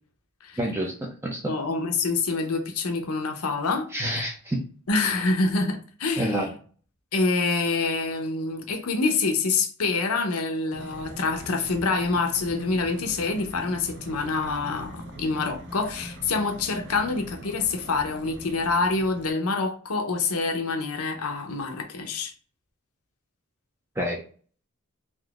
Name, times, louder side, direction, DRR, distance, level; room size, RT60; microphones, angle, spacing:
voice 1, 0.6-1.5 3.9-4.6 6.2-6.5 24.0-24.2, equal, 10° right, 0.4 m, -28 dB
voice 2, 1.5-3.9 4.9-6.5 7.1-22.3, left 3 dB, 80° left, 0.6 m, -26 dB
sound 1, 10.7-19.3, right 1 dB, 50° right, 0.6 m, -42 dB
3.7 x 2.5 x 2.3 m
head